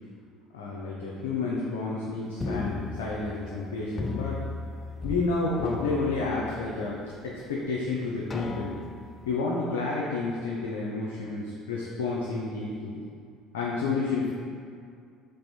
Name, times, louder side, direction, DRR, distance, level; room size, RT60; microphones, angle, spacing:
voice 1, 0.5-4.4 5.0-7.0 7.2-8.7 9.3-13.0 13.5-14.3, left 3 dB, 80° left, -4 dB, 0.5 m, -30 dB
sound 1, 2.4-3.6 4.0-5.3 5.5-6.9 7.4-7.5 8.3-9.1, left 3 dB, 30° left, 0.4 m, -34 dB
3.3 x 3.3 x 4.2 m, 2.3 s
hypercardioid pair, 65°, 0 cm